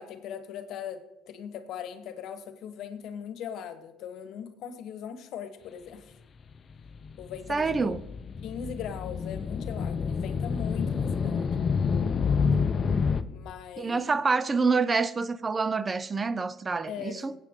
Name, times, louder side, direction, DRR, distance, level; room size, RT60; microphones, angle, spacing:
voice 1, 0.0-6.1 7.2-8.0 8.4-11.5 13.3-14.2 16.9-17.3, left 8 dB, 70° left, 1.1 m, -40 dB
sound 1, 6.7-13.2, left 5 dB, 40° left, 0.6 m, -28 dB
voice 2, 7.5-8.0 13.8-17.4, right 4 dB, 30° right, 0.4 m, -27 dB
18.5 x 8.3 x 3.7 m
supercardioid pair, 85°, 0 cm